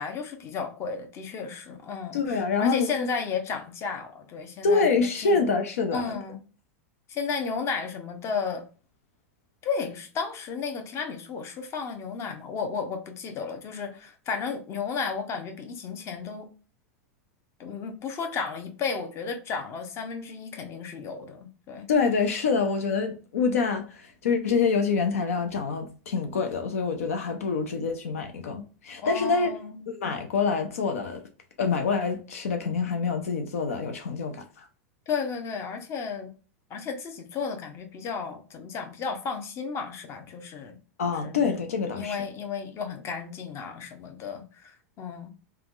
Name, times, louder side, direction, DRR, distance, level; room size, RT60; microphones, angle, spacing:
voice 1, 0.0-4.9 5.2-5.4 5.9-6.4 7.1-8.6 9.6-16.5 17.6-21.9 29.0-29.8 35.1-36.3 36.7-40.8 41.1-41.4 41.9-45.3, left 5 dB, 35° left, 0.8 m, -33 dB
voice 2, 2.1-2.9 4.6-6.2 21.9-29.5 29.9-31.2 31.6-34.4 41.0-42.2, left 5 dB, 85° left, 0.6 m, -26 dB
3.4 x 2.3 x 2.4 m
hypercardioid pair, 110°, 8 cm